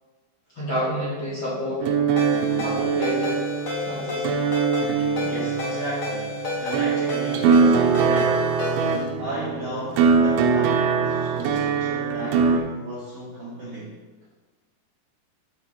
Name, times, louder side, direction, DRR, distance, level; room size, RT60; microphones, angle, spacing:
voice 1, 0.5-1.9 2.5-3.4 3.8-4.3, equal, 35° left, -9 dB, 2.1 m, -29 dB
sound 1, 1.8-12.6, right 5 dB, 85° right, 3.1 m, -22 dB
Ringtone, 2.2-9.0, left 2 dB, 65° left, 1.3 m, -31 dB
voice 2, 5.2-8.5 9.2-14.0, right 1 dB, 55° right, -9 dB, 2.0 m, -35 dB
11.5 x 4.3 x 4.3 m, 1.2 s
omnidirectional pair, 5.2 m